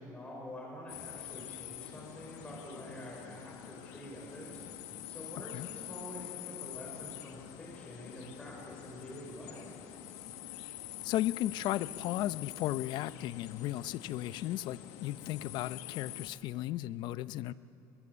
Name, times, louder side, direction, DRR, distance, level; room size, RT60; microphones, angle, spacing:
voice 1, 0.0-4.7 5.1-9.9, left 1 dB, 15° left, -3 dB, 5.5 m, -47 dB
sound 1, 0.9-16.3, left 12 dB, 80° left, 1.4 m, -46 dB
voice 2, 11.0-17.5, left 14 dB, 65° left, 16 dB, 0.6 m, -35 dB
24.0 x 21.5 x 8.3 m, 2.9 s
cardioid pair, 115°, 8 cm